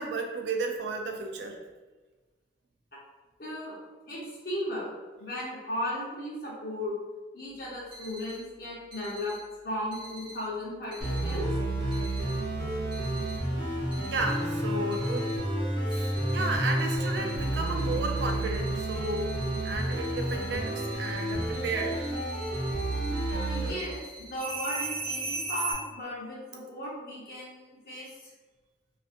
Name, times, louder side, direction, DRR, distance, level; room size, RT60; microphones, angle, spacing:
voice 1, 0.0-1.6 14.1-15.3 15.9-19.4 19.6-22.0, right 3 dB, 85° right, 3 dB, 0.4 m, -33 dB
voice 2, 3.4-3.8 4.1-4.9 5.2-7.0 7.3-9.4 9.6-11.5 23.3-28.3, left 1 dB, 55° left, -6 dB, 0.9 m, -36 dB
sound 1, 7.9-8.4 8.9-9.4 9.9-10.4 10.9-11.4 11.9-12.4 12.9-13.4 13.9-14.4 14.9-15.4 15.9-25.7, right 2 dB, 30° right, 1.0 m, -39 dB
sound 2, 11.0-23.7, right 1 dB, 65° right, 0.9 m, -30 dB
2.5 x 2.4 x 2.5 m, 1.3 s
head